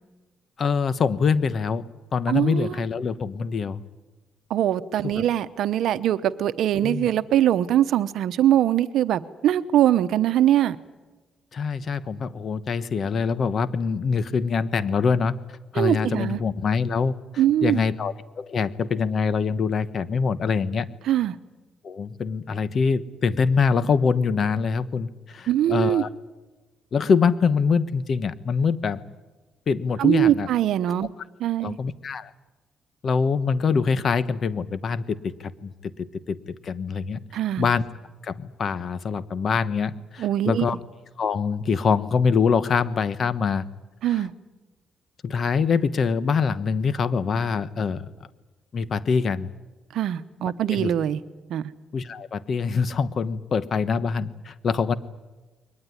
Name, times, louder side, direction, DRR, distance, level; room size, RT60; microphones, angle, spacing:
voice 1, 0.6-1.8 2.1-3.8 5.1-5.2 6.8-7.1 11.5-15.3 15.7-17.2 17.6-20.9 21.8-26.1 26.9-29.0 29.7-30.5 31.6-32.3 33.0-35.3 35.6-37.2 37.6-37.8 38.2-40.8 41.2-43.6 45.2-48.1 48.7-49.5 50.7-50.9 51.9-54.9, left 5 dB, 50° left, 16 dB, 1.1 m, -24 dB
voice 2, 2.3-2.7 4.5-10.8 15.7-16.4 17.4-17.8 21.0-21.4 25.5-26.0 30.0-31.1 31.4-31.8 37.3-37.7 40.2-40.6 44.0-44.3 49.9-51.2 51.5-51.6, right 11 dB, 75° right, 13 dB, 0.9 m, -22 dB
22.5 x 19.5 x 9.8 m, 1.2 s
cardioid pair, 90°, 0 cm